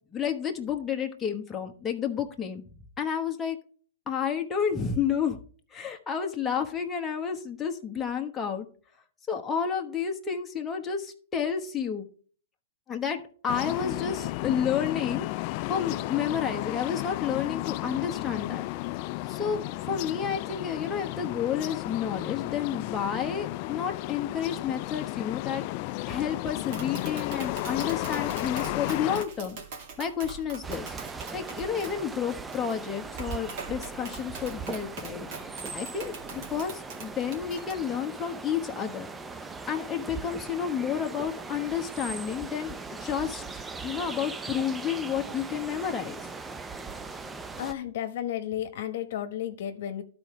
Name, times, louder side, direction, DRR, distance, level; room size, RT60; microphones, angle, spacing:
voice 1, 0.1-2.6 3.0-3.6 4.1-5.4 5.7-8.7 9.3-12.1 12.9-15.3 15.7-18.7 19.3-25.6 26.0-29.6 30.0-31.0 31.3-35.3 35.7-39.1 39.7-43.4 43.8-46.2, left 7 dB, 15° left, 2 dB, 1.2 m, -30 dB
sound 1, 13.5-29.3, left 18 dB, 45° left, 0.3 m, -33 dB
Tap, 26.5-37.7, right 5 dB, 50° right, 2.3 m, -43 dB
sound 2, 30.6-47.7, right 4 dB, 10° right, 0.5 m, -39 dB
voice 2, 47.6-50.0, left 11 dB, 60° left, 9 dB, 1.1 m, -33 dB
12.0 x 4.4 x 4.9 m, 0.43 s
hypercardioid pair, 140°, 0 cm